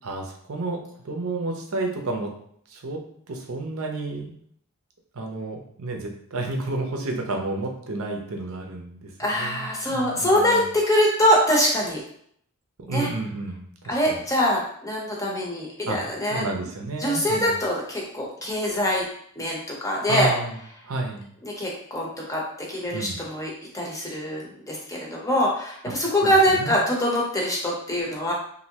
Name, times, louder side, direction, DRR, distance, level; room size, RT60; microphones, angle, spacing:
voice 1, 0.0-2.3 2.7-3.0 3.3-4.3 5.1-10.7 12.9-14.2 15.8-16.0 16.3-17.6 20.1-20.5 20.8-21.3 22.9-23.2 26.2-26.7, right 2 dB, 65° right, 2 dB, 0.6 m, -31 dB
voice 2, 9.2-12.0 12.9-13.1 13.9-16.4 17.0-19.1 19.4-19.6 19.8-20.3 21.4-22.4 22.7-28.3, equal, 15° left, -3 dB, 0.7 m, -23 dB
3.1 x 2.6 x 2.8 m, 0.65 s
head